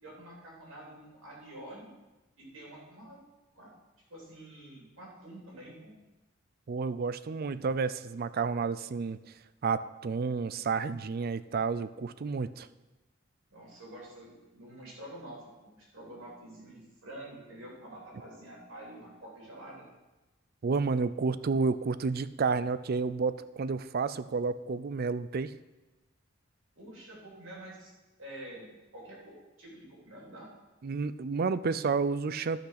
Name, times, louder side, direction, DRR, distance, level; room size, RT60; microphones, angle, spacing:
voice 1, 0.0-1.9 2.4-3.2 3.5-3.7 4.1-5.9 13.5-19.9 26.8-27.9 28.2-30.5, right 1 dB, 70° right, -4 dB, 3.5 m, -48 dB
voice 2, 6.7-9.2 9.6-12.7 20.6-25.5 30.8-32.6, right 4 dB, 50° right, 15 dB, 0.4 m, -30 dB
13.0 x 6.0 x 5.9 m, 1.1 s
head